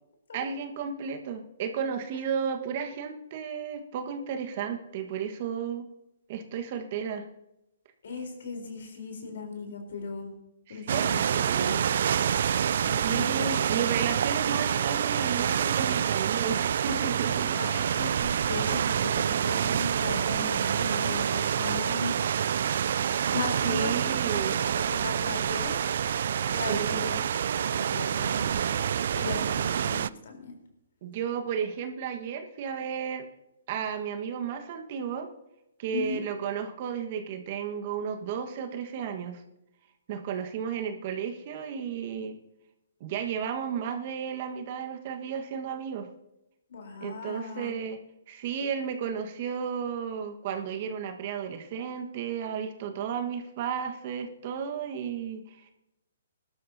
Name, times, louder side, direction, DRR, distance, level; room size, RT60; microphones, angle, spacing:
voice 1, 0.3-5.8 6.3-7.2 10.7-11.8 12.8-17.5 23.6-24.6 26.7-27.1 31.0-33.3 33.7-35.3 35.8-39.4 40.1-42.4 43.0-46.1 47.0-48.0 48.3-55.7, right 7 dB, 45° right, 6 dB, 1.6 m, -33 dB
voice 2, 8.0-10.3 10.7-11.9 12.8-13.5 17.3-22.1 23.3-24.0 24.4-25.8 26.5-27.2 27.6-30.5 35.9-36.2 46.7-47.7, left 4 dB, 65° left, 3 dB, 4.0 m, -37 dB
sound 1, 10.9-30.1, right 8 dB, 60° right, 0.3 m, -27 dB
20.5 x 12.5 x 2.8 m, 0.87 s
hypercardioid pair, 130°, 0 cm